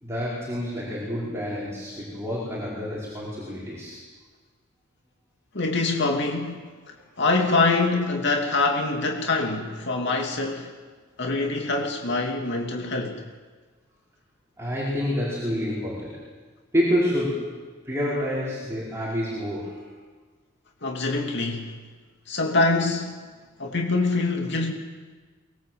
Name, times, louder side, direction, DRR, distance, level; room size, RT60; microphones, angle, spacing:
voice 1, 0.0-4.0 14.6-16.2 16.7-19.9, equal, 15° right, -7 dB, 5.0 m, -28 dB
voice 2, 5.5-6.7 7.2-10.7 11.2-13.2 20.8-21.7 22.3-23.2 23.6-24.7, left 3 dB, 60° left, 1 dB, 2.6 m, -24 dB
23.5 x 22.0 x 7.7 m, 1.4 s
head